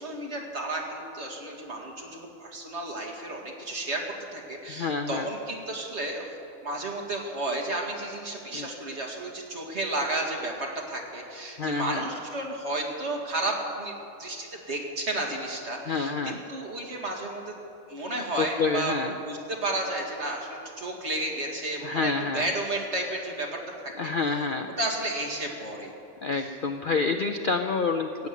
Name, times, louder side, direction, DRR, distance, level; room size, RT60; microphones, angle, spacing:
voice 1, 0.0-4.0 4.3-6.3 6.6-13.9 14.2-17.5 17.9-24.5 24.8-25.9 26.4-26.5, right 2 dB, 50° right, 0 dB, 2.3 m, -32 dB
voice 2, 4.7-5.3 8.5-8.7 11.6-12.0 15.9-16.4 18.4-19.1 21.8-22.5 24.0-24.8 26.2-28.3, left 4 dB, 50° left, 6 dB, 0.6 m, -28 dB
16.5 x 9.6 x 8.3 m, 2.9 s
omnidirectional pair, 1.5 m